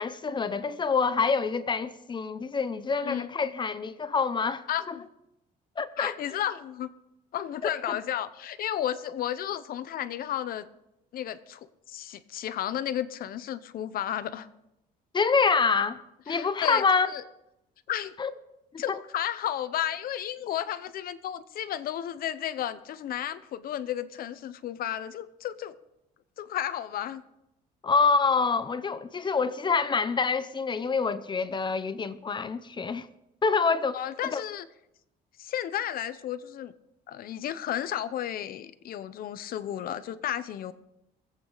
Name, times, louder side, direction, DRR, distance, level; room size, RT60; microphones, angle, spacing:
voice 1, 0.0-5.0 5.8-6.1 7.9-8.0 15.1-17.1 18.2-18.3 18.7-19.0 27.8-33.1 33.4-34.0 34.3-34.4, left 5 dB, 25° left, 0.7 m, -26 dB
voice 2, 3.0-3.3 4.7-5.1 6.0-6.9 7.3-10.7 11.1-14.5 16.3-17.2 17.9-18.1 18.8-25.8 26.4-27.2 33.9-34.7 35.4-36.7 37.1-40.7, left 11 dB, 60° left, 0.8 m, -33 dB
22.5 x 8.3 x 4.0 m
cardioid pair, 110°, 17 cm